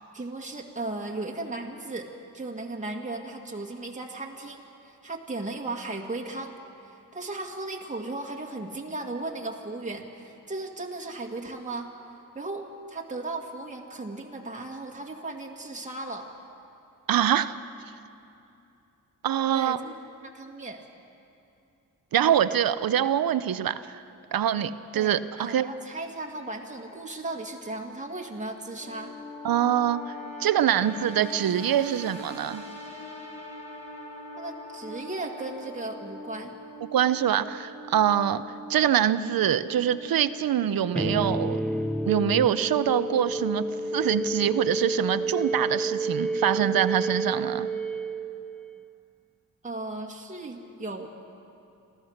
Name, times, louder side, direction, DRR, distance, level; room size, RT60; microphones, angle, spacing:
voice 1, 0.1-2.1 2.3-6.5 6.8-11.9 12.3-16.3 19.5-19.9 20.2-20.8 24.9-29.1 34.4-36.5 49.6-51.1, right 2 dB, 20° right, 0 dB, 2.0 m, -36 dB
voice 2, 17.1-17.5 19.2-19.8 22.1-24.0 24.3-25.7 29.4-30.1 30.4-32.7 36.9-41.6 42.1-47.7, right 10 dB, 85° right, 14 dB, 0.7 m, -24 dB
sound 1, 28.6-46.3, left 2 dB, 20° left, 6.1 m, -43 dB
sound 2, 40.9-48.9, right 2 dB, ahead, 0.5 m, -30 dB
27.0 x 15.0 x 6.5 m, 2.7 s
wide cardioid pair, 90°, 34 cm